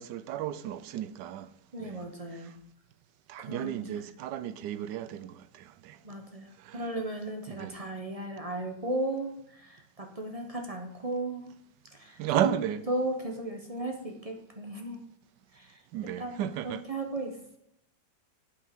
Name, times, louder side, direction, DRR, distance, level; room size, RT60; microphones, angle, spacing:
voice 1, 0.0-1.5 1.8-2.0 3.3-6.0 6.6-6.8 7.5-7.8 12.2-12.8 15.9-16.8, right 12 dB, 85° right, 1.2 m, -33 dB
voice 2, 1.7-2.5 3.4-4.1 6.0-11.5 12.0-12.5 12.9-15.0 15.5-17.6, right 1 dB, 25° right, 0.9 m, -36 dB
8.3 x 5.6 x 5.9 m
omnidirectional pair, 1.8 m